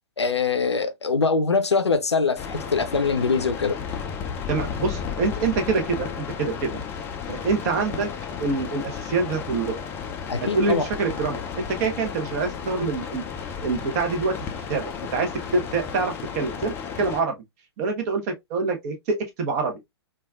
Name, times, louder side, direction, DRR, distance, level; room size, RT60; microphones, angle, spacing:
voice 1, 0.2-3.8 10.3-10.9, left 4 dB, 80° left, 0.5 m, -23 dB
sound 1, 2.4-17.2, left 7 dB, 15° left, 0.3 m, -33 dB
voice 2, 4.5-6.1 6.4-6.8 7.3-8.1 8.4-9.8 10.4-13.2 13.6-14.3 14.7-17.4 17.8-19.7, right 4 dB, 35° right, 0.8 m, -25 dB
3.2 x 2.3 x 2.3 m
figure-of-eight pair, 115°, 14 cm